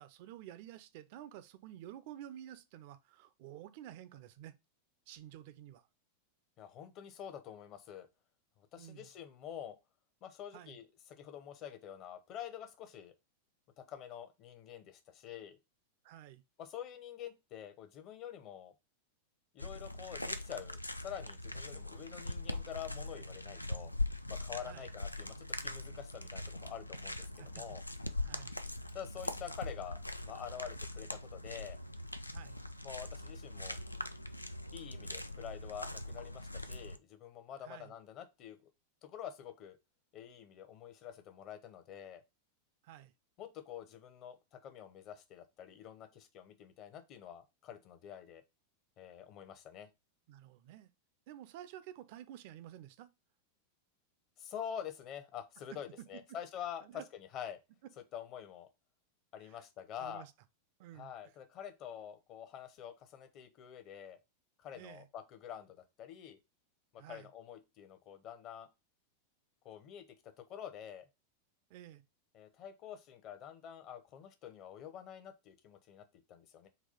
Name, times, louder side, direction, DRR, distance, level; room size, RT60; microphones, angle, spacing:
voice 1, 0.0-4.6 5.1-5.9 8.8-9.1 10.5-10.8 16.0-16.4 24.6-24.9 27.3-27.6 28.2-28.6 32.3-32.6 37.6-37.9 42.8-43.1 50.3-50.9 51.3-53.1 55.7-55.8 56.8-57.1 57.8-57.9 59.4-59.6 60.0-60.3 60.8-61.1 64.7-65.1 67.0-67.3 71.7-72.0, right 12 dB, 50° right, 0.4 m, -51 dB
voice 2, 6.6-8.1 8.6-9.8 10.2-13.1 13.8-15.6 16.6-18.7 19.5-23.9 24.3-27.8 28.9-30.0 30.3-31.8 32.8-33.8 34.7-38.7 39.0-39.8 40.1-42.2 43.4-48.4 49.0-49.9 54.4-57.6 58.1-58.7 59.3-60.2 60.9-64.2 64.6-66.4 66.9-68.7 69.6-70.0 70.4-71.1 72.3-76.7, left 9 dB, 35° left, 0.7 m, -47 dB
sound 1, 19.6-37.0, left 2 dB, 85° left, 0.3 m, -41 dB
4.1 x 2.3 x 4.2 m
figure-of-eight pair, 90°, 0 cm